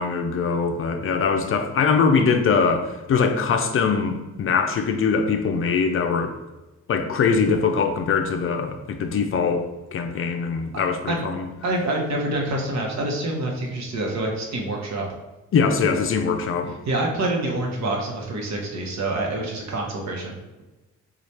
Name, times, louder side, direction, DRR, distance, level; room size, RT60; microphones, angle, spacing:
voice 1, 0.0-6.3 6.9-11.5 15.5-16.7, left 5 dB, 45° left, 6 dB, 0.5 m, -22 dB
voice 2, 11.6-15.1 16.8-20.4, right 2 dB, 65° right, 0 dB, 1.0 m, -26 dB
3.2 x 2.4 x 4.1 m, 1.1 s
cardioid pair, 90°, 30 cm